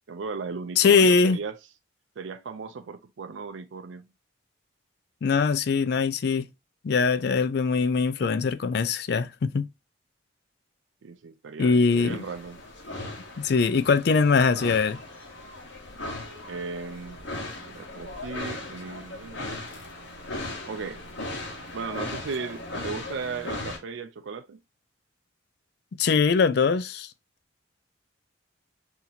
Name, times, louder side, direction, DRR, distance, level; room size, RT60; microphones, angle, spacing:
voice 1, 0.0-1.6 2.2-4.1 11.0-12.6 16.5-19.5 20.7-21.0 21.7-24.6, right 4 dB, 70° right, 0.4 m, -36 dB
voice 2, 0.8-1.4 5.2-6.5 6.8-9.7 11.6-12.2 13.4-15.0 26.0-27.1, left 5 dB, 55° left, 0.3 m, -22 dB
sound 1, 11.9-23.8, left 2 dB, 70° left, 1.2 m, -38 dB
4.0 x 2.8 x 2.7 m
head